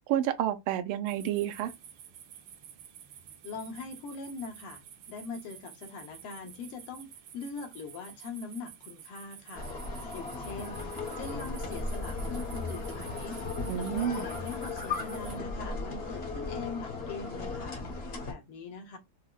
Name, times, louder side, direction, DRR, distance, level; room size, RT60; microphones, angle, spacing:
voice 1, 0.1-1.7 13.7-14.2, right 11 dB, 85° right, 1.5 m, -30 dB
sound 1, 1.1-15.4, right 9 dB, 70° right, 1.2 m, -51 dB
voice 2, 3.4-4.8 5.1-9.7 10.1-10.8 11.2-13.4 13.7-17.8 18.3-19.0, left 4 dB, 85° left, 1.9 m, -42 dB
sound 2, 9.5-18.3, left 3 dB, 60° left, 0.6 m, -36 dB
4.8 x 2.0 x 2.2 m
omnidirectional pair, 2.4 m